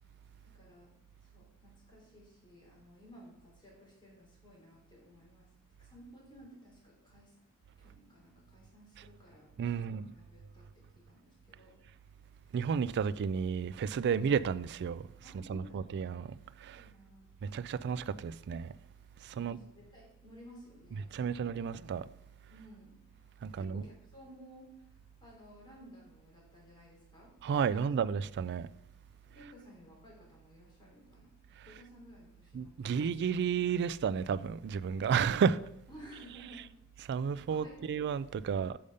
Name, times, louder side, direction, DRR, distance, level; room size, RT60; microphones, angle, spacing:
voice 1, 0.4-0.9 1.2-5.5 5.8-7.4 7.8-11.8 15.2-16.0 16.8-17.3 19.3-21.7 22.5-23.0 23.5-27.3 27.7-28.0 29.3-31.3 31.6-33.3 35.9-36.7 37.5-38.0, equal, 20° left, 3.1 m, -56 dB
voice 2, 9.6-10.1 12.5-16.9 17.4-18.7 19.2-19.6 20.9-22.1 23.4-23.9 27.4-28.7 29.4-29.5 31.6-31.8 32.5-35.6 37.0-38.8, right 6 dB, 50° right, 0.3 m, -32 dB
6.9 x 5.0 x 5.3 m
head